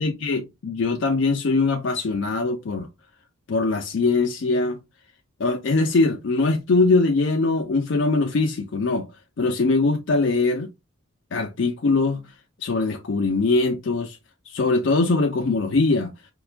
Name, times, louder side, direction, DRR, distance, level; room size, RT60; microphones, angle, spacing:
voice 1, 0.0-2.9 3.5-4.8 5.4-9.1 9.4-10.7 11.3-12.3 12.6-14.2 14.5-16.1, left 3 dB, 55° left, 0.4 m, -22 dB
4.6 x 2.2 x 2.4 m
head